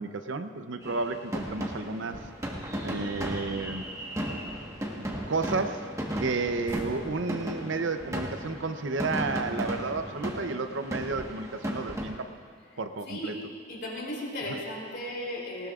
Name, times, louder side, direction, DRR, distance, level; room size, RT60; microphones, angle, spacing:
voice 1, 0.0-2.2 2.8-3.9 5.3-5.9 6.2-12.3 12.8-13.4 14.5-14.6, right 3 dB, 75° right, 8 dB, 0.7 m, -32 dB
sound 1, 0.8-12.1, equal, 15° right, 1.3 m, -35 dB
sound 2, 6.7-10.1, left 1 dB, 85° left, 2.2 m, -50 dB
voice 2, 13.0-13.4 13.7-15.7, left 1 dB, 60° left, -3 dB, 3.2 m, -35 dB
19.0 x 18.0 x 2.5 m, 2.2 s
head